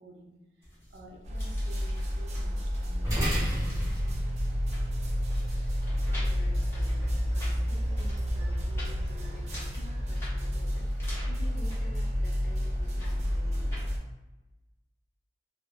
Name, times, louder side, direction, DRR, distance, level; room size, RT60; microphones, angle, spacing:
voice 1, 0.0-4.3, right 2 dB, 80° right, -1 dB, 0.6 m, -51 dB
sound 1, 0.6-13.9, equal, 15° left, 0.6 m, -45 dB
sound 2, 1.2-14.0, equal, 35° right, 0.4 m, -30 dB
sound 3, 3.0-11.7, right 1 dB, 15° right, 0.9 m, -37 dB
voice 2, 6.1-13.8, left 1 dB, 55° left, -1 dB, 0.5 m, -50 dB
2.1 x 2.1 x 3.5 m, 1.0 s
head